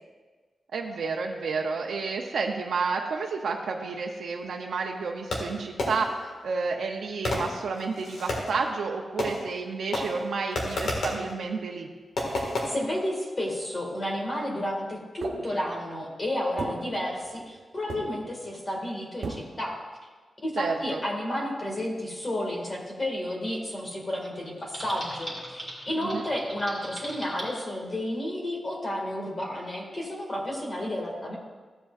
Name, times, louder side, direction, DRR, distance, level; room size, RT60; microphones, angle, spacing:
voice 1, 0.7-11.9 20.6-21.0 26.0-26.3, right 4 dB, 90° right, 1 dB, 0.6 m, -31 dB
Fireworks, 5.3-6.3 7.2-8.6 9.2-9.7 9.9-11.3 12.2-12.7, left 1 dB, 70° left, 1.7 m, -31 dB
voice 2, 12.7-19.7 20.4-31.4, left 1 dB, 30° left, -2 dB, 1.9 m, -31 dB
sound 1, 15.2-16.0 16.6-17.6 17.9-18.5 19.2-19.7, right 3 dB, 75° right, 1.0 m, -37 dB
Typing, 24.7-27.5, right 1 dB, 10° left, 2.1 m, -39 dB
14.5 x 7.8 x 2.4 m, 1.4 s
wide cardioid pair, 135°, 0 cm